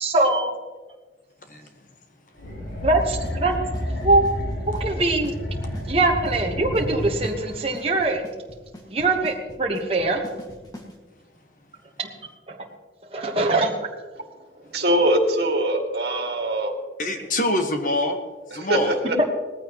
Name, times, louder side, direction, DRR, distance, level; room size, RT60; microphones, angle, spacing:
voice 1, 0.0-0.5 2.8-3.6 4.0-4.3 4.7-5.3 5.9-8.2 8.9-10.2 12.0-12.1 12.5-12.6 13.1-13.7, right 2 dB, 30° right, 0 dB, 1.2 m, -22 dB
voice 2, 1.5-1.8 17.0-18.2 18.5-19.0, left 1 dB, 45° left, 5 dB, 1.3 m, -25 dB
sound 1, 2.4-7.6, equal, 80° left, 5.5 m, -30 dB
Drum kit / Snare drum / Bass drum, 3.0-10.9, left 1 dB, 20° left, 1.8 m, -42 dB
voice 3, 14.6-16.7 18.5-19.2, right 1 dB, 60° right, 3 dB, 2.2 m, -22 dB
19.0 x 14.5 x 3.0 m, 1.4 s
head